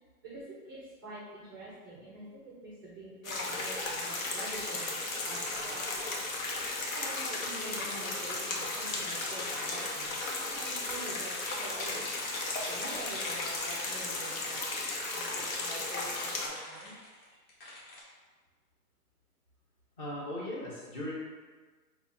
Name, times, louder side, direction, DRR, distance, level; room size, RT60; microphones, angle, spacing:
voice 1, 0.7-5.0 5.2-6.0 6.8-11.3 11.6-12.0 12.6-14.7 15.1-16.9, right 2 dB, 15° right, -7 dB, 0.5 m, -46 dB
sound 1, 3.2-16.5, left 2 dB, 55° left, 1.0 m, -35 dB
sound 2, 8.9-10.2 11.3-14.2 15.4-18.0, left 2 dB, 35° left, 1.4 m, -45 dB
voice 2, 20.0-21.1, left 1 dB, 20° left, -5 dB, 0.9 m, -38 dB
4.4 x 2.8 x 4.2 m, 1.4 s
hypercardioid pair, 150°, 47 cm